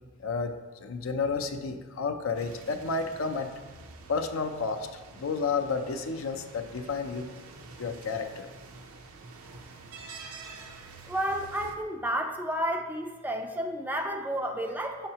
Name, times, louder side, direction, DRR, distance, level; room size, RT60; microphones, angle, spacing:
voice 1, 0.2-3.5 4.1-4.9 5.1-7.3 7.8-8.5, left 4 dB, 70° left, 7 dB, 0.5 m, -31 dB
sound 1, 2.3-11.8, right 4 dB, 90° right, 0.6 m, -48 dB
voice 2, 11.1-15.1, right 1 dB, 10° right, 4 dB, 0.3 m, -31 dB
6.4 x 5.7 x 2.8 m, 1.4 s
head